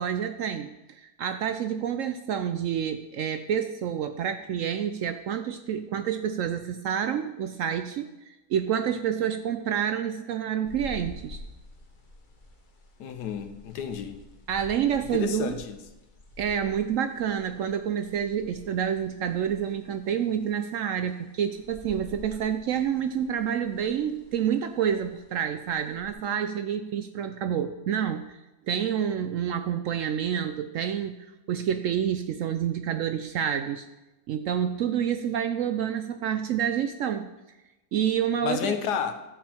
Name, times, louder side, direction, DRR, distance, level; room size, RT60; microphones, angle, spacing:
voice 1, 0.0-11.4 14.5-15.6 16.4-28.4 28.7-33.9 34.3-37.3 37.9-38.7, right 8 dB, 70° right, 9 dB, 0.8 m, -28 dB
sound 1, 10.7-26.1, left 2 dB, 35° left, 1.0 m, -49 dB
voice 2, 13.0-14.2 15.1-15.8 38.4-39.1, left 7 dB, 85° left, 8 dB, 1.4 m, -30 dB
11.0 x 7.5 x 4.4 m, 1.0 s
omnidirectional pair, 1.7 m